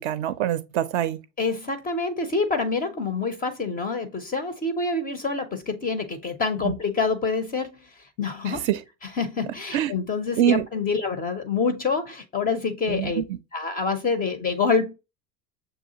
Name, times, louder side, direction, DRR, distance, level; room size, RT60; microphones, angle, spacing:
voice 1, 0.0-1.2 6.6-6.7 8.5-8.8 9.7-9.9 10.4-10.6 12.9-13.2, right 10 dB, 45° right, 0.5 m, -24 dB
voice 2, 1.4-7.8 8.2-8.7 9.0-13.2 13.5-14.9, left 4 dB, 20° left, 0.5 m, -26 dB
6.4 x 2.3 x 2.7 m
figure-of-eight pair, 80°, 49 cm